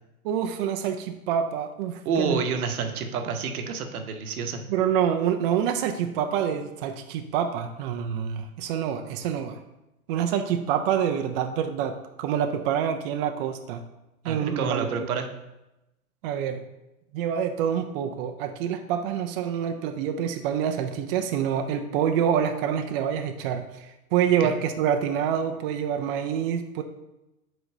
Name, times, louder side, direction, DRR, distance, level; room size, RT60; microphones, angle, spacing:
voice 1, 0.2-2.4 4.7-9.6 10.1-13.8 14.2-15.1 16.2-16.6 17.1-26.8, right 8 dB, 40° right, 5 dB, 0.5 m, -27 dB
voice 2, 2.0-4.6 14.2-15.3 24.4-24.5, right 5 dB, 75° right, 6 dB, 0.9 m, -28 dB
4.8 x 3.9 x 5.3 m, 0.95 s
hypercardioid pair, 120°, 44 cm